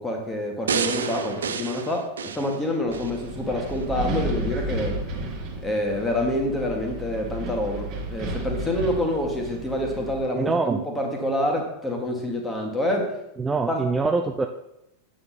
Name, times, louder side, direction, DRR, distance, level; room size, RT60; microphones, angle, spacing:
voice 1, 0.0-5.0 5.6-13.1 13.7-13.9, left 1 dB, 10° left, 1 dB, 1.8 m, -27 dB
sound 1, 0.7-3.2 3.7-3.8, right 6 dB, 65° right, 0.5 m, -29 dB
Wind, 2.9-10.2, right 1 dB, 35° right, 1.8 m, -32 dB
voice 2, 10.4-10.8 13.4-14.5, right 4 dB, 15° right, 5 dB, 0.4 m, -24 dB
8.5 x 6.4 x 4.2 m, 0.86 s
figure-of-eight pair, 90°, 0 cm